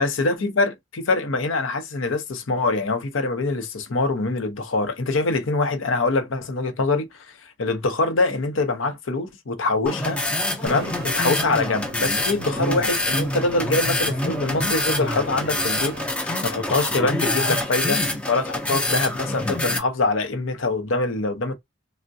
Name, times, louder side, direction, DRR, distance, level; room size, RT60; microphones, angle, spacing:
voice 1, 0.0-21.5, left 3 dB, 85° left, 0.7 m, -24 dB
sound 1, 9.9-19.8, left 1 dB, 5° left, 0.4 m, -26 dB
sound 2, 10.7-16.0, right 3 dB, 50° right, 0.5 m, -40 dB
3.4 x 2.1 x 2.6 m
head